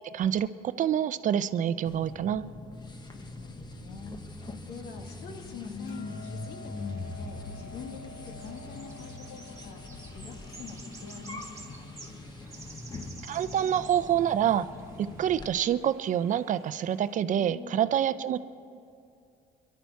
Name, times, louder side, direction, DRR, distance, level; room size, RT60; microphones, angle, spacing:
voice 1, 0.1-2.5 13.3-14.7 15.0-18.4, right 10 dB, 50° right, 14 dB, 0.5 m, -27 dB
sound 1, 1.9-15.5, left 3 dB, 25° left, 1.1 m, -42 dB
voice 2, 3.1-11.9 14.6-15.0 17.3-17.9, left 5 dB, 80° left, 3 dB, 1.9 m, -45 dB
Hammer, 5.9-12.1, left 4 dB, 45° left, 4.9 m, -50 dB
sound 2, 6.6-17.2, right 3 dB, 20° right, 2.2 m, -52 dB
25.0 x 11.5 x 4.7 m, 2.5 s
cardioid pair, 110°, 17 cm